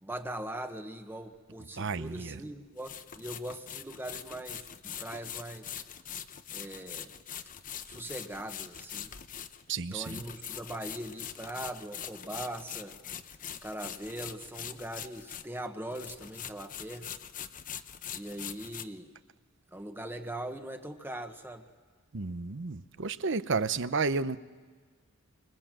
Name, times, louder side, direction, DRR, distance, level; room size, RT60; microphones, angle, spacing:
voice 1, 0.0-5.8 6.5-7.2 7.9-9.1 9.9-13.0 13.6-17.1 18.1-19.1 19.7-21.6, right 1 dB, 10° right, 5 dB, 1.3 m, -41 dB
sound 1, 1.3-1.4 2.8-15.7 15.9-18.8, left 9 dB, 40° left, 0.8 m, -43 dB
voice 2, 1.8-2.4 9.7-10.2 22.1-24.4, right 4 dB, 60° right, 14 dB, 0.8 m, -32 dB
28.0 x 25.0 x 7.6 m, 1.5 s
head